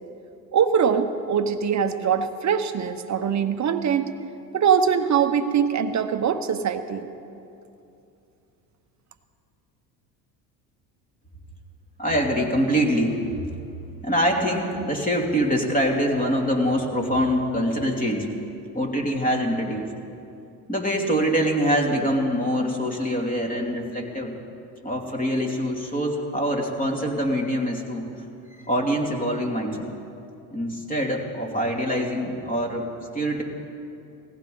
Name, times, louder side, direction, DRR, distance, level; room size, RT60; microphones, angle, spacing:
voice 1, 0.5-4.1 4.5-7.1, right 7 dB, 35° right, 9 dB, 1.1 m, -22 dB
voice 2, 12.0-13.2 14.0-18.3 18.7-19.9 20.7-24.4 24.8-28.0 28.6-29.9 30.5-32.9 33.1-33.4, equal, 15° left, 0 dB, 2.8 m, -24 dB
19.0 x 15.5 x 3.9 m, 2.6 s
hypercardioid pair, 80°, 49 cm